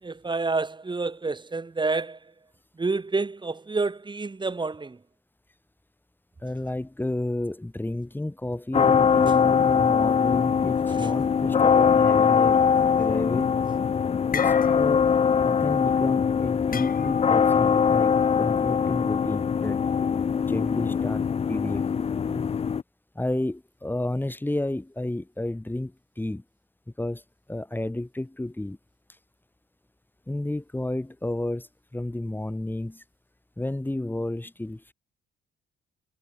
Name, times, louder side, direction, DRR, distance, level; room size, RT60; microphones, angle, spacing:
voice 1, 0.0-2.2 2.8-5.0 9.3-9.4 10.9-11.1, right 3 dB, 25° right, 3.6 m, -29 dB
voice 2, 6.4-12.7 13.0-13.5 14.3-15.0 15.4-19.8 20.4-21.9 22.3-22.5 23.1-26.4 27.0-27.2 27.5-28.8 30.3-33.0 33.6-34.9, left 1 dB, 10° left, 2.9 m, -31 dB
sound 1, 8.7-22.8, left 6 dB, 30° left, 0.5 m, -22 dB
sound 2, 14.3-15.2 15.4-15.7 16.7-17.4, left 6 dB, 45° left, 6.7 m, -34 dB
cardioid pair, 90°, 20 cm